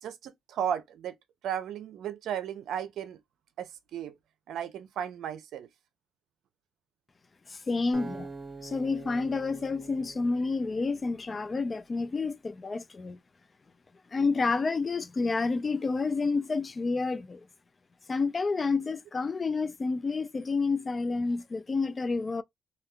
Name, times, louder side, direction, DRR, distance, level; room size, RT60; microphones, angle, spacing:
voice 1, 0.0-1.2 1.4-3.2 3.6-4.1 4.5-5.7, right 9 dB, 75° right, 0.5 m, -35 dB
voice 2, 7.5-8.3 8.6-13.2 14.1-17.5 18.1-22.4, left 4 dB, 30° left, 0.3 m, -29 dB
Acoustic guitar, 7.9-11.1, right 4 dB, 35° right, 1.2 m, -45 dB
3.5 x 2.3 x 2.2 m
cardioid pair, 90°, 0 cm